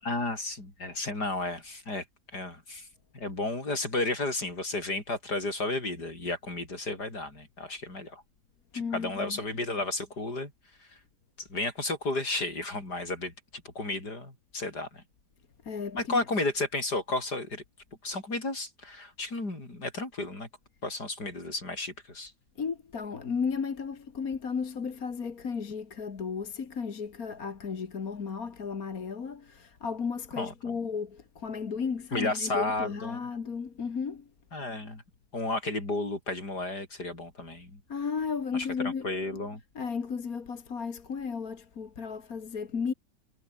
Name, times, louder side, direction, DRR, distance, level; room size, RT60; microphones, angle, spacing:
voice 1, 0.0-2.1 2.3-2.9 3.1-8.2 8.7-10.5 10.8-11.0 11.4-15.0 15.9-17.6 18.0-20.5 20.8-22.3 30.4-30.7 32.1-33.2 34.5-35.0 35.3-37.8 38.5-38.7 39.0-39.6, left 2 dB, 80° left, 7.2 m, -33 dB
voice 2, 8.7-9.4 15.6-16.2 22.6-34.3 37.9-39.1 39.8-42.9, left 5 dB, 60° left, 2.3 m, -34 dB
omnidirectional pair, 1.7 m